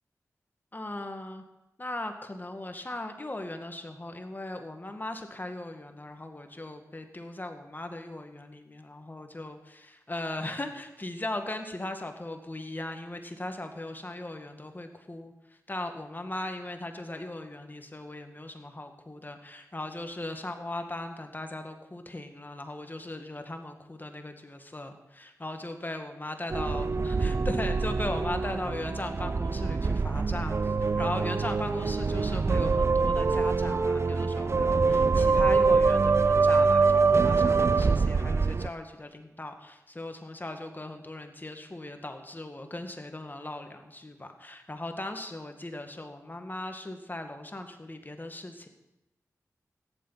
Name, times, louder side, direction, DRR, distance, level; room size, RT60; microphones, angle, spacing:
voice 1, 0.7-1.4 1.8-48.7, left 1 dB, 30° left, 6 dB, 1.9 m, -38 dB
sound 1, 26.5-38.7, right 4 dB, 45° right, 0.4 m, -25 dB
14.0 x 11.0 x 5.7 m, 0.93 s
cardioid pair, 40°, 6 cm